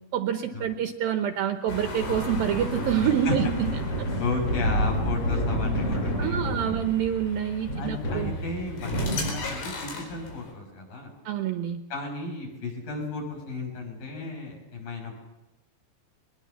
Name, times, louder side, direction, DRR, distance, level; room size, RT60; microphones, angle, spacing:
voice 1, 0.1-3.7 6.2-8.3 11.3-11.8, right 9 dB, 70° right, 6 dB, 2.4 m, -27 dB
sound 1, 1.7-10.5, left 2 dB, 85° left, 6.9 m, -34 dB
sound 2, 2.0-9.7, equal, 35° left, 5.5 m, -31 dB
voice 2, 4.2-6.8 7.8-11.1 11.9-15.1, left 3 dB, 50° left, 1 dB, 7.9 m, -34 dB
22.5 x 20.0 x 7.2 m, 1.0 s
omnidirectional pair, 5.0 m